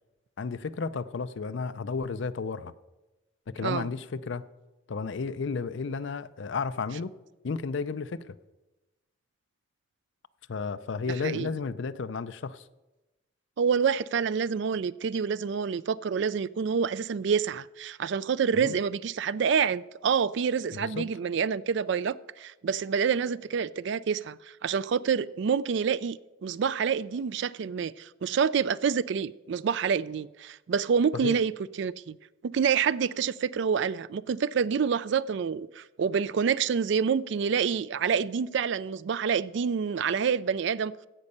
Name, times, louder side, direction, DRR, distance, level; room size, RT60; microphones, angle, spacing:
voice 1, 0.4-2.7 3.5-4.4 4.9-7.1 7.4-8.3 10.5-12.6 18.5-18.8 20.8-21.1 31.1-31.4, left 4 dB, 60° left, 0.4 m, -33 dB
voice 2, 13.6-31.5 31.8-32.2 32.4-40.9, right 6 dB, 55° right, 0.3 m, -27 dB
15.5 x 5.4 x 6.6 m
head